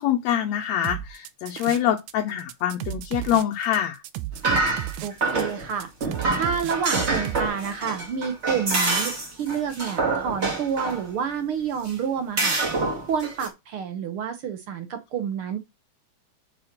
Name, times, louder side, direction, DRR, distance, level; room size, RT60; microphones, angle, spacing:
voice 1, 0.0-4.0, left 10 dB, 70° left, 2.1 m, -25 dB
sound 1, 0.8-2.1 2.4-7.5, right 14 dB, 85° right, 2.1 m, -34 dB
sound 2, 4.3-5.7 6.0-11.1 11.9-12.0 12.4-13.5, right 3 dB, 25° right, 1.9 m, -26 dB
voice 2, 5.0-5.9 6.3-12.6 13.1-15.6, right 7 dB, 65° right, 1.5 m, -29 dB
5.9 x 5.5 x 6.5 m
omnidirectional pair, 3.3 m